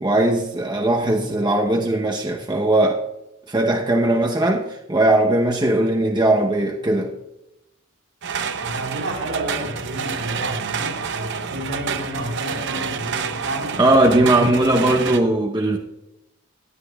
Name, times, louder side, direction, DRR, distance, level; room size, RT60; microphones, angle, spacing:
voice 1, 0.0-3.0 3.5-7.1 13.8-15.8, right 1 dB, 20° right, 0 dB, 0.9 m, -19 dB
sound 1, 8.2-15.2, right 6 dB, 60° right, 0.7 m, -28 dB
voice 2, 8.6-13.8 14.1-15.3, right 1 dB, 80° right, -2 dB, 4.0 m, -31 dB
18.0 x 10.5 x 2.4 m, 0.88 s
head